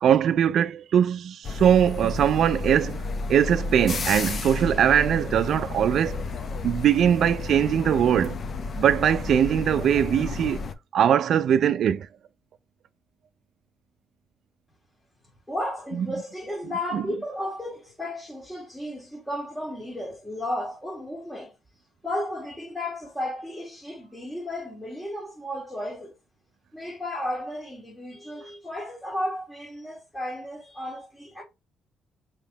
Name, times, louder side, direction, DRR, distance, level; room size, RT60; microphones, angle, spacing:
voice 1, 0.0-3.0 3.3-6.2 6.6-8.4 8.8-10.6 10.9-12.1 16.9-17.0, right 9 dB, 65° right, 0.4 m, -21 dB
sound 1, 1.4-10.7, left 3 dB, 50° left, 0.7 m, -32 dB
voice 2, 15.5-21.5 22.0-26.1 26.7-31.4, left 1 dB, 5° left, 1.6 m, -33 dB
3.6 x 3.0 x 4.7 m
cardioid pair, 90°, 0 cm